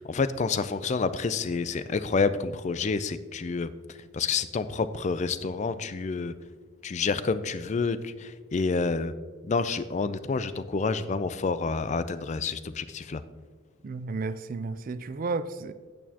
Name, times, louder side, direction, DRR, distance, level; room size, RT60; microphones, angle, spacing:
voice 1, 0.0-3.7 4.1-6.3 6.8-9.1 9.5-13.2, left 4 dB, 35° left, 13 dB, 0.4 m, -28 dB
voice 2, 13.8-15.7, right 3 dB, 40° right, 13 dB, 0.4 m, -32 dB
9.1 x 8.4 x 2.9 m, 1.4 s
head